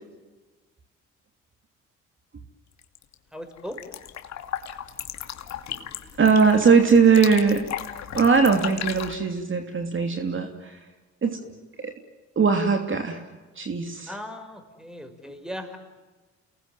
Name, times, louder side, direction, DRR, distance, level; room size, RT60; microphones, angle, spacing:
sound 1, 2.8-3.1 3.5-9.2, left 10 dB, 65° left, 2.6 m, -36 dB
voice 1, 3.3-3.8 14.1-15.8, equal, ahead, 7 dB, 5.9 m, -37 dB
voice 2, 6.2-7.6 8.1-10.8 11.2-11.5 11.8-11.9 12.4-13.2 13.6-14.1, right 5 dB, 40° right, 5 dB, 3.0 m, -20 dB
29.0 x 20.5 x 9.4 m, 1.2 s
cardioid pair, 80°, 29 cm